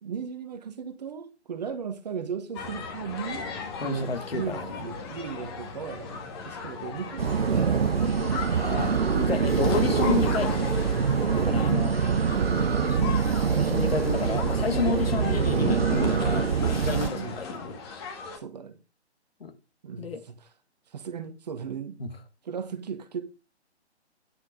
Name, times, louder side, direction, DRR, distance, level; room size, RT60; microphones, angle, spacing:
voice 1, 0.0-3.5 3.8-8.6 11.4-11.6 12.0-13.0 14.8-15.2 17.1-17.4 18.3-18.8 19.8-20.5 20.9-22.0 22.4-23.2, right 7 dB, 35° right, 1.2 m, -36 dB
sound 1, 2.5-18.4, left 4 dB, 20° left, 1.7 m, -36 dB
voice 2, 3.8-4.9 9.1-10.6 11.4-11.9 12.7-13.2 13.4-17.6 19.4-19.5 20.0-20.2 22.0-22.1, left 5 dB, 60° left, 2.0 m, -31 dB
sound 2, 7.2-17.1, right 6 dB, 60° right, 0.8 m, -24 dB
9.9 x 5.8 x 5.0 m
figure-of-eight pair, 140°, 34 cm